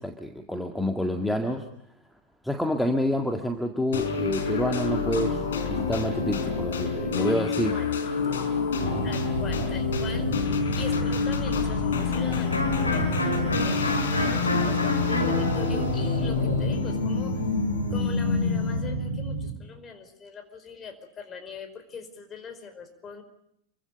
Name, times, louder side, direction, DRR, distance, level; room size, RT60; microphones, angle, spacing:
voice 1, 0.0-1.7 2.4-7.7 8.8-9.1, left 1 dB, ahead, 4 dB, 1.9 m, -28 dB
sound 1, 3.9-19.0, left 6 dB, 65° left, 4.3 m, -27 dB
voice 2, 7.2-7.9 8.2-8.3 9.0-23.2, left 5 dB, 25° left, 8 dB, 4.9 m, -42 dB
sound 2, 8.8-19.5, right 3 dB, 85° right, 2.9 m, -32 dB
Electric guitar, 12.5-18.1, left 1 dB, 85° left, 6.0 m, -31 dB
28.5 x 24.0 x 5.4 m, 0.76 s
figure-of-eight pair, 90°, 0 cm